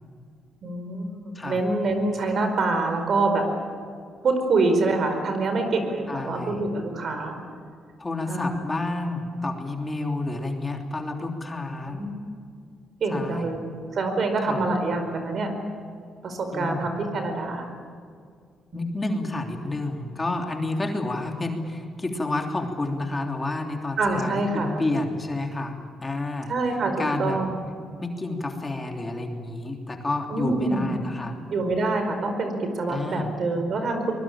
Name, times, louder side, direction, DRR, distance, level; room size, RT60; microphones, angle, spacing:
voice 1, 0.6-3.4 4.2-7.4 8.3-8.6 11.9-12.2 13.0-13.6 13.9-15.5 16.2-17.7 18.7-18.9 24.0-24.8 26.5-27.7 30.3-31.0 31.5-34.1, right 3 dB, 55° right, 6 dB, 4.8 m, -26 dB
voice 2, 6.1-6.6 8.0-12.0 13.1-13.5 14.4-14.6 16.5-16.9 18.7-25.7 26.0-26.5 27.0-27.4 28.0-31.4 32.9-33.3, left 2 dB, 20° left, 2 dB, 3.2 m, -30 dB
23.5 x 21.5 x 8.9 m, 2.2 s
cardioid pair, 90°, 0 cm